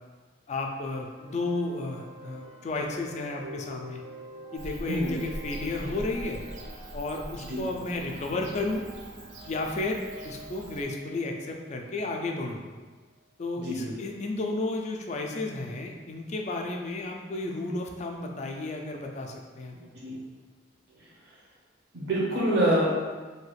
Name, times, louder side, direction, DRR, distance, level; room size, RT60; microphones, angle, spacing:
voice 1, 0.5-4.0 4.5-6.4 6.9-8.8 9.5-10.0 10.2-12.6 13.4-19.8, left 2 dB, 40° left, 2 dB, 0.3 m, -32 dB
sound 1, 1.1-12.4, right 1 dB, 25° right, 0.4 m, -47 dB
Bird / Cricket, 4.6-10.8, right 1 dB, 90° right, 0.5 m, -43 dB
voice 2, 13.6-13.9 20.0-20.2 20.9-21.1 21.9-22.9, right 1 dB, 60° right, -6 dB, 0.8 m, -26 dB
2.7 x 2.3 x 3.2 m, 1.4 s
head